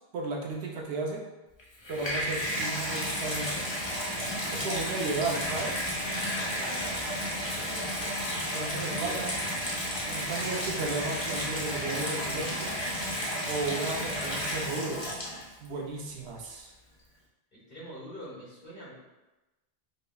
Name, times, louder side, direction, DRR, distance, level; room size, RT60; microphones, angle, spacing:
voice 1, 0.1-1.2 1.9-3.6 4.5-5.9 8.5-9.3 10.1-12.7 13.4-15.1 15.6-16.7, right 3 dB, 80° right, -1 dB, 0.9 m, -34 dB
Water tap faucet / Bathtub (filling or washing), 1.6-15.7 16.4-16.5, equal, 30° left, 0.6 m, -32 dB
voice 2, 6.6-7.0 7.5-7.9 8.8-9.2 17.5-18.9, equal, 55° left, -7 dB, 1.7 m, -44 dB
5.0 x 2.0 x 2.3 m, 1.1 s
omnidirectional pair, 1.1 m